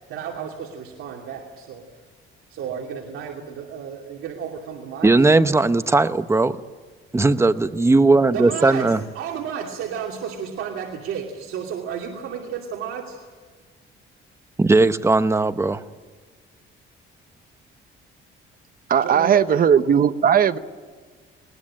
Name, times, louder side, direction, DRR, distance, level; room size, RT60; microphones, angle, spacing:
voice 1, 0.1-1.8 2.5-5.2 8.3-13.2 19.0-19.6, right 7 dB, 75° right, 0 dB, 2.8 m, -32 dB
voice 2, 5.0-6.6 7.1-9.0 14.6-15.8, right 3 dB, 10° right, 12 dB, 0.9 m, -17 dB
voice 3, 18.9-20.6, right 8 dB, 40° right, 12 dB, 0.9 m, -17 dB
21.0 x 19.5 x 8.8 m, 1.5 s
cardioid pair, 120°, 21 cm